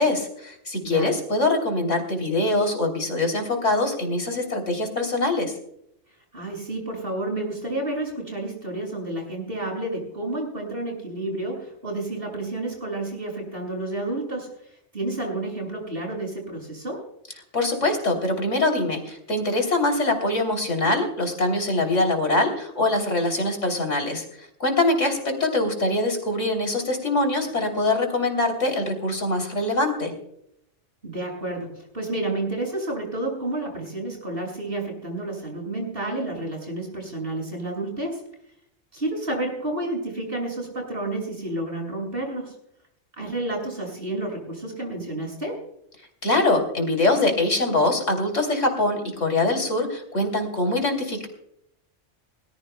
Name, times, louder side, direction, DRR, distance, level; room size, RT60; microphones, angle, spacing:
voice 1, 0.0-5.5 17.5-24.2 24.6-30.1 46.2-51.3, left 2 dB, 85° left, 4 dB, 3.6 m, -23 dB
voice 2, 6.3-14.5 14.9-17.0 31.0-38.2 38.9-42.6 43.2-45.6, right 2 dB, 50° right, 0 dB, 6.8 m, -30 dB
21.0 x 20.0 x 2.3 m, 0.73 s
omnidirectional pair, 1.2 m